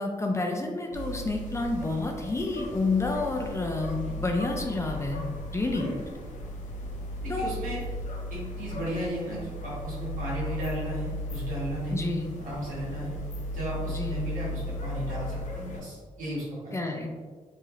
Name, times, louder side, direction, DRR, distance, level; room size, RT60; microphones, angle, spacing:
voice 1, 0.0-5.2 5.5-5.9 7.3-7.5 11.9-12.3 13.9-14.2 16.7-17.1, left 2 dB, 20° left, 2 dB, 0.4 m, -29 dB
sound 1, 0.9-15.8, left 1 dB, 70° left, 0.6 m, -36 dB
voice 2, 7.2-7.8 8.3-12.1 12.4-13.1 13.5-16.8, right 1 dB, 85° right, -7 dB, 1.4 m, -35 dB
3.1 x 2.8 x 2.4 m, 1.5 s
cardioid pair, 95°, 13 cm